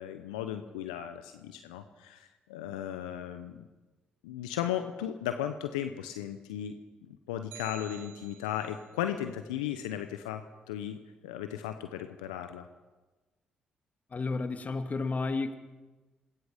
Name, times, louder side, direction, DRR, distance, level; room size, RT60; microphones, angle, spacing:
voice 1, 0.0-3.6 4.2-6.7 7.1-10.4 10.7-11.0 11.2-12.7, left 10 dB, 85° left, 8 dB, 0.9 m, -36 dB
sound 1, 7.5-8.9, right 13 dB, 75° right, 1.0 m, -50 dB
voice 2, 14.1-15.6, left 3 dB, 40° left, 8 dB, 2.3 m, -31 dB
26.5 x 20.0 x 5.2 m, 1.2 s
hypercardioid pair, 40°, 4 cm